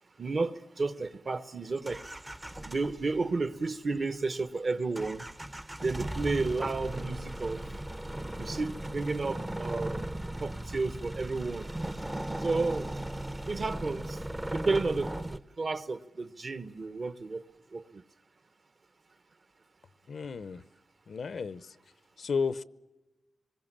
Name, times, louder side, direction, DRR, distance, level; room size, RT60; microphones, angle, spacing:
voice 1, 0.2-2.0 2.7-5.3 5.8-7.6 8.4-10.1 10.4-11.7 12.4-13.0 13.5-14.2 14.5-17.4 17.7-18.0, right 3 dB, 40° right, 1.0 m, -32 dB
sound 1, 1.8-3.3 3.5-3.7 3.9-4.5 5.0-15.4, right 1 dB, 15° right, 0.7 m, -37 dB
voice 2, 20.1-20.6 21.1-21.6 22.2-22.6, left 5 dB, 60° left, 0.7 m, -32 dB
25.0 x 21.5 x 7.4 m
wide cardioid pair, 105°, 0 cm